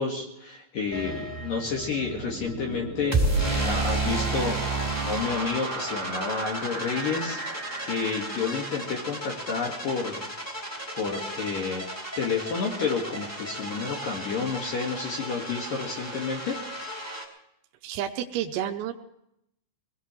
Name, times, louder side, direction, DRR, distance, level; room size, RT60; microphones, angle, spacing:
voice 1, 0.0-4.6 5.0-7.4 7.8-10.3 10.9-11.9 12.2-16.6, left 5 dB, 60° left, 0 dB, 2.7 m, -30 dB
sound 1, 0.9-17.2, right 2 dB, 5° left, 2.0 m, -32 dB
sound 2, 1.7-9.6, right 3 dB, 40° right, 1.9 m, -38 dB
voice 2, 17.8-18.9, right 10 dB, 85° right, 4 dB, 3.5 m, -30 dB
23.5 x 19.0 x 3.2 m, 0.79 s
omnidirectional pair, 6.0 m